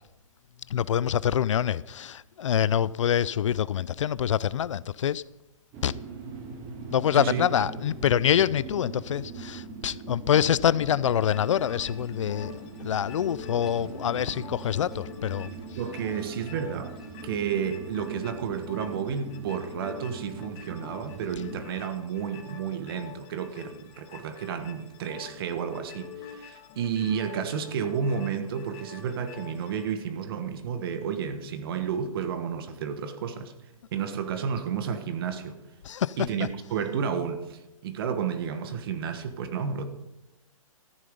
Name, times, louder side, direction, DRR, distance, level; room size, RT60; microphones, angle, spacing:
voice 1, 0.7-5.2 5.8-5.9 6.9-15.5 35.8-36.2, left 9 dB, 60° left, 0.4 m, -25 dB
sound 1, 5.7-21.7, right 4 dB, 25° right, 1.8 m, -42 dB
sound 2, 11.0-29.9, left 8 dB, 25° left, 1.5 m, -48 dB
Livestock farm animals working animals, 11.6-17.4, equal, ahead, 3.5 m, -52 dB
voice 2, 15.8-17.0 17.2-33.5 33.9-35.6 36.2-39.8, right 7 dB, 40° right, 1.4 m, -31 dB
14.0 x 9.4 x 5.4 m
hypercardioid pair, 155°, 18 cm